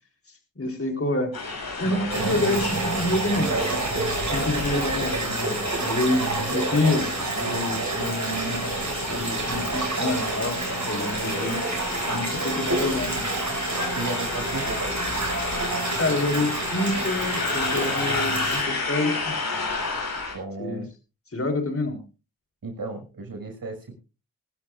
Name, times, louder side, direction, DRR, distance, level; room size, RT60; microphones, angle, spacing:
voice 1, 0.6-1.3 1.8-3.5 4.3-6.2 6.5-8.8 9.1-10.6 10.8-11.6 12.1-13.2 16.0-19.3 20.6-20.8 21.3-22.0, left 2 dB, 35° left, 3 dB, 4.0 m, -27 dB
sound 1, 1.3-20.3, left 3 dB, 65° left, 7.3 m, -32 dB
voice 2, 1.8-3.3 6.2-6.6 13.9-14.9 20.3-20.9 22.6-24.0, right 3 dB, 65° right, 2 dB, 6.2 m, -35 dB
sound 2, 2.1-18.6, right 3 dB, 50° right, 6.5 m, -29 dB
22.0 x 13.0 x 2.5 m, 0.32 s
supercardioid pair, 40°, 38 cm